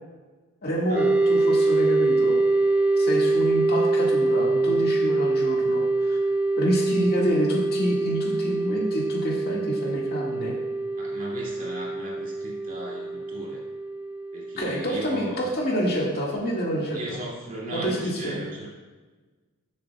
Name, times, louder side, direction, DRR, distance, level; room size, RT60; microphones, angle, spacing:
voice 1, 0.6-2.4 3.0-6.2 6.6-10.5 14.6-17.2 17.7-18.4, equal, 45° left, -3 dB, 1.9 m, -27 dB
sound 1, 0.9-14.8, right 2 dB, 5° right, 0.5 m, -24 dB
voice 2, 11.0-13.6 14.3-15.4 16.9-18.7, right 1 dB, 35° right, -5 dB, 2.5 m, -36 dB
13.5 x 7.5 x 2.3 m, 1.3 s
head